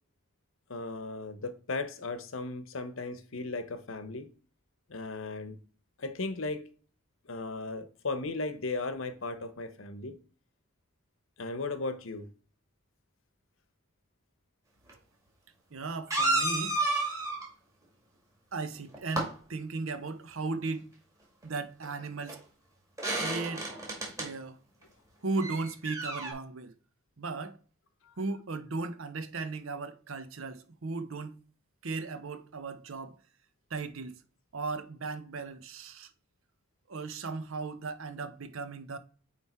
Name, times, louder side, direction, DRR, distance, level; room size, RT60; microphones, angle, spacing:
voice 1, 0.7-4.3 4.9-5.6 6.0-6.6 7.3-10.1 11.4-12.3 28.1-28.2, left 3 dB, 65° left, 0.9 m, -36 dB
sound 1, 14.9-15.0 16.1-17.5 18.8-19.3 21.8-21.9 22.3-22.4 23.0-24.3 25.4-26.3, right 2 dB, 15° right, 2.0 m, -31 dB
voice 2, 15.7-16.8 18.5-20.9 21.4-22.4 23.2-23.7 24.2-24.6 25.2-26.7 27.2-27.6 28.2-31.4 31.8-33.2 33.7-34.2 34.5-36.1 36.9-39.0, right 3 dB, 70° right, 0.8 m, -36 dB
9.0 x 3.2 x 4.3 m
head